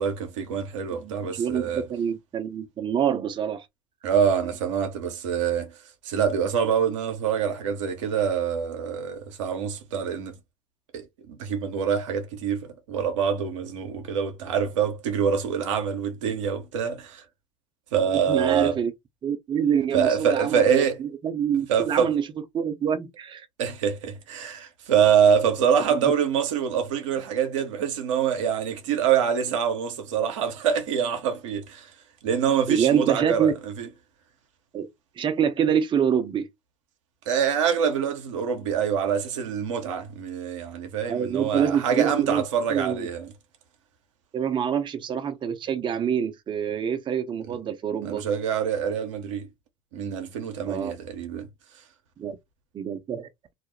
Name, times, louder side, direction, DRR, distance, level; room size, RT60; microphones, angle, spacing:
voice 1, 0.0-1.8 4.0-5.7 6.0-10.3 10.9-17.2 17.9-18.8 19.9-21.0 21.7-22.1 23.6-31.9 32.2-33.9 37.3-43.3 48.0-49.5 49.9-51.5, right 7 dB, 75° right, 0.7 m, -25 dB
voice 2, 0.9-3.7 18.3-18.9 19.2-22.2 22.5-23.5 25.9-26.1 32.7-33.5 34.7-34.9 35.2-36.5 41.1-42.4 42.7-43.1 44.3-48.2 50.7-50.9 52.2-52.4 52.7-53.3, right 8 dB, 30° right, 0.6 m, -26 dB
2.3 x 2.0 x 3.0 m
hypercardioid pair, 75°, 16 cm